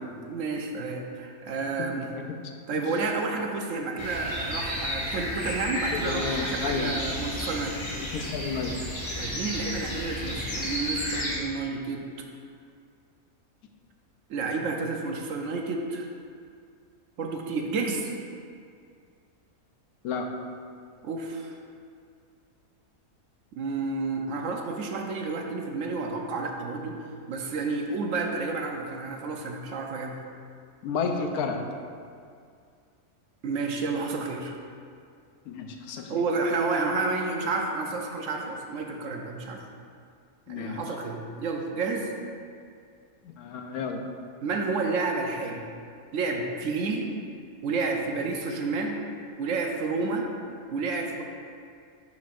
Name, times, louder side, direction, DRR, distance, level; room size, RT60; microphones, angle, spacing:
voice 1, 0.0-2.1 2.7-7.7 9.2-12.1 14.3-16.1 17.2-18.1 21.0-21.6 23.5-30.2 33.4-34.6 36.1-39.6 40.5-42.1 44.4-45.6 46.1-47.1 47.6-49.0 49.4-50.3 50.7-51.2, right 3 dB, 65° right, 2 dB, 0.9 m, -30 dB
sound 1, 4.0-11.4, equal, 25° left, 0.8 m, -32 dB
voice 2, 5.9-7.0 7.9-8.7 20.0-20.3 30.8-31.6 35.5-36.1 40.5-40.8 43.2-44.0, left 5 dB, 90° left, 3 dB, 1.1 m, -31 dB
10.5 x 4.1 x 2.5 m, 2.3 s
omnidirectional pair, 1.5 m